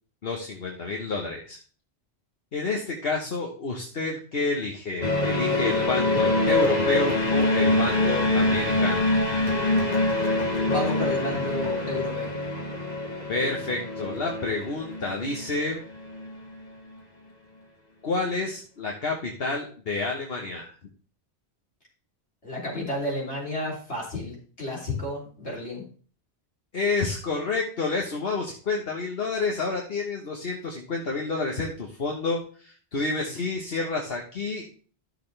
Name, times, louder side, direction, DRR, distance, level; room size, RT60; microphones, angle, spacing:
voice 1, 0.2-1.6 2.5-9.1 13.3-15.8 18.0-20.7 26.7-34.6, left 3 dB, 65° left, 0 dB, 1.4 m, -29 dB
sound 1, 5.0-16.4, left 2 dB, 40° left, 1.6 m, -25 dB
voice 2, 10.6-12.4 22.4-25.8, left 1 dB, 90° left, -4 dB, 3.6 m, -32 dB
12.5 x 6.5 x 3.3 m, 0.42 s
omnidirectional pair, 1.1 m